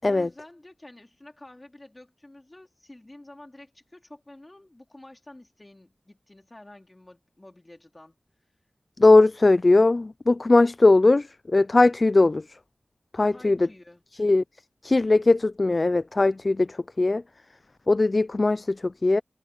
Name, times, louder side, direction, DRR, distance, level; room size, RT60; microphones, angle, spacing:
voice 1, 0.0-8.2 9.2-9.3 13.3-14.0, left 1 dB, 30° left, 4.0 m, -49 dB
voice 2, 9.0-12.4 13.2-13.6 14.2-14.4 14.8-16.7 17.0-17.2 17.9-19.2, left 2 dB, 45° left, 0.3 m, -19 dB
cardioid pair, 50°, 0 cm